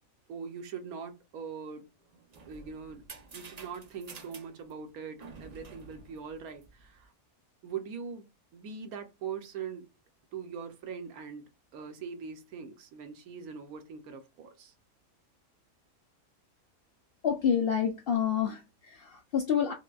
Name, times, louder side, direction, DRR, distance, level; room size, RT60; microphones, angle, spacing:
voice 1, 0.3-1.9 2.5-3.0 3.3-7.1 7.6-8.3 8.5-9.9 10.3-14.7, right 6 dB, 85° right, 1.2 m, -42 dB
sound 1, 2.0-7.0, right 4 dB, 55° right, 0.4 m, -50 dB
voice 2, 17.2-19.7, left 8 dB, 65° left, 0.5 m, -28 dB
5.0 x 2.2 x 2.3 m
omnidirectional pair, 1.5 m